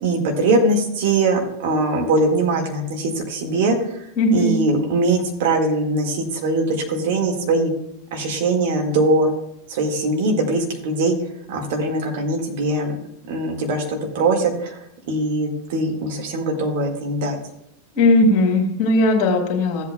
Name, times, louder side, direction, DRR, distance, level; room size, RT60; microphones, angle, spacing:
voice 1, 0.0-3.8 4.3-7.7 8.1-9.3 9.7-11.1 11.5-13.0 13.3-14.8 15.1-17.4, right 2 dB, 50° right, 2 dB, 1.8 m, -21 dB
voice 2, 4.2-4.6 17.9-19.8, left 2 dB, 40° left, 3 dB, 2.3 m, -17 dB
15.0 x 8.2 x 2.3 m, 0.77 s
figure-of-eight pair, 90°, 0 cm